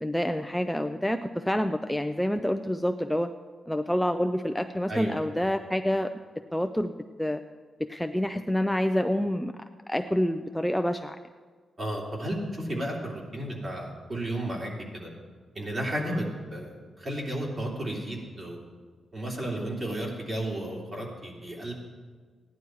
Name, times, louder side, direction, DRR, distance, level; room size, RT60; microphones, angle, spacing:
voice 1, 0.0-3.3 3.7-6.1 6.5-7.4 7.8-9.5 9.9-11.2 16.1-16.3, equal, 5° left, 7 dB, 0.4 m, -27 dB
voice 2, 4.9-5.3 11.8-15.1 15.5-18.6 19.1-21.7, right 1 dB, 35° right, -2 dB, 3.1 m, -33 dB
16.0 x 10.5 x 4.7 m, 1.5 s
cardioid pair, 110°, 0 cm